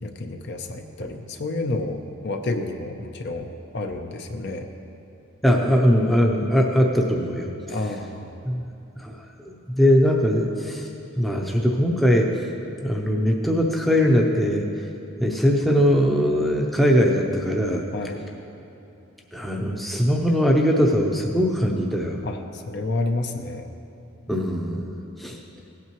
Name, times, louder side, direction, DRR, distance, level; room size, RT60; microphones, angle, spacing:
voice 1, 0.0-3.5 3.7-4.7 7.7-8.4 17.9-18.2 22.2-23.7, left 2 dB, 50° left, 5 dB, 0.6 m, -30 dB
voice 2, 5.4-7.8 8.4-8.6 9.0-9.1 9.4-10.9 11.2-12.3 12.8-14.7 15.2-17.8 19.3-22.2 24.3-25.4, equal, ahead, 0 dB, 0.6 m, -21 dB
17.0 x 8.5 x 3.0 m, 2.9 s
head